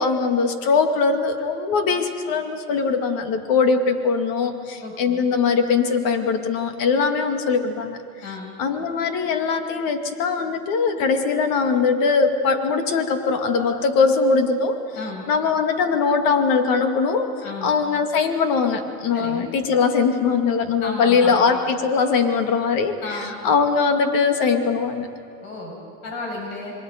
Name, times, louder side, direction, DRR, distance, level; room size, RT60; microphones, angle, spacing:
voice 1, 0.0-8.0 8.6-14.8 15.3-17.3 17.6-25.1, left 5 dB, 50° left, 6 dB, 2.3 m, -21 dB
voice 2, 4.8-5.3 8.2-8.6 15.0-15.2 17.4-17.8 19.1-19.5 20.8-21.5 23.0-23.4 25.4-25.8 26.0-26.7, left 3 dB, 70° left, 0 dB, 6.9 m, -33 dB
26.5 x 23.0 x 5.2 m, 2.5 s
supercardioid pair, 125°, 43 cm